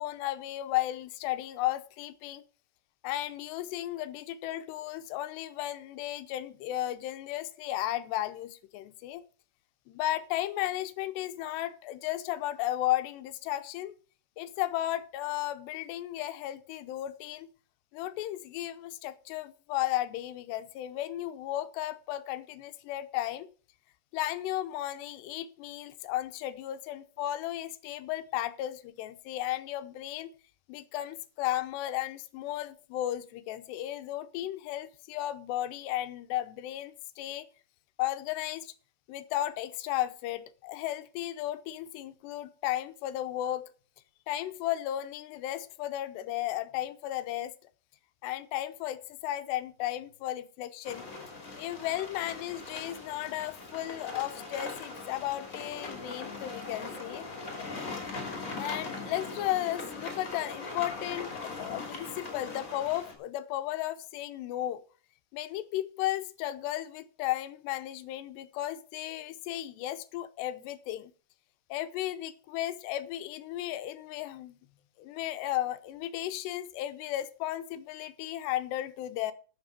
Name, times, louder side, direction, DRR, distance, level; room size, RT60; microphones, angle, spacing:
voice 1, 0.0-2.4 3.0-9.2 9.9-13.9 14.4-17.5 17.9-23.5 24.1-30.3 30.7-37.5 38.0-38.7 39.1-43.6 44.3-47.5 48.2-51.0 51.6-57.3 58.6-64.8 65.3-71.1 71.7-74.6 75.0-79.3, left 14 dB, 80° left, 2.8 m, -34 dB
sound 1, 50.8-63.1, left 3 dB, 25° left, 2.2 m, -40 dB
12.0 x 6.4 x 6.6 m
omnidirectional pair, 5.1 m